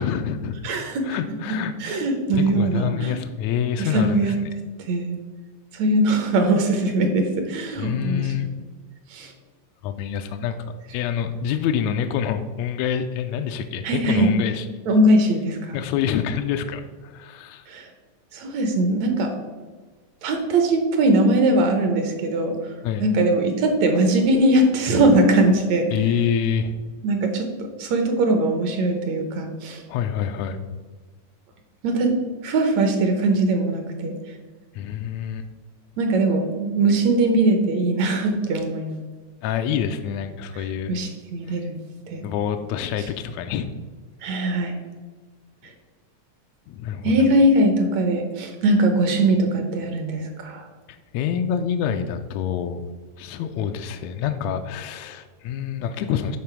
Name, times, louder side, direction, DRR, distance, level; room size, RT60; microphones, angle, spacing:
voice 1, 0.0-0.5 1.0-2.0 2.3-4.5 7.8-8.5 9.8-10.5 10.9-14.7 15.7-17.6 22.8-23.1 25.9-26.7 29.9-30.6 34.7-35.4 39.4-40.9 41.5-41.6 42.2-43.7 46.7-47.3 51.1-52.9 53.2-56.4, left 8 dB, 80° left, 6 dB, 1.6 m, -26 dB
voice 2, 0.6-1.2 1.8-3.1 3.8-4.4 4.9-5.2 5.7-8.5 9.1-9.3 13.8-14.3 14.9-15.8 17.7-17.9 18.3-19.3 20.2-22.6 23.0-25.9 27.0-29.8 31.8-32.2 32.4-34.2 36.0-39.0 40.9-41.7 42.1-42.3 44.2-44.8 47.0-50.6, right 2 dB, 70° right, 5 dB, 2.0 m, -21 dB
10.5 x 3.9 x 6.0 m, 1.4 s
omnidirectional pair, 3.6 m